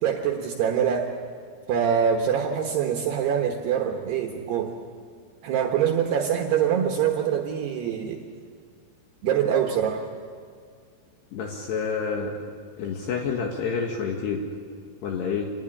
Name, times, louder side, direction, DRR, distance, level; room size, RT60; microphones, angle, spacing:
voice 1, 0.0-1.1 1.7-4.7 5.4-8.2 9.2-10.0, right 8 dB, 65° right, 3 dB, 3.0 m, -24 dB
voice 2, 11.3-12.4 12.8-14.5 15.0-15.5, left 5 dB, 65° left, 2 dB, 3.5 m, -28 dB
26.5 x 19.0 x 9.9 m, 2.1 s
omnidirectional pair, 5.7 m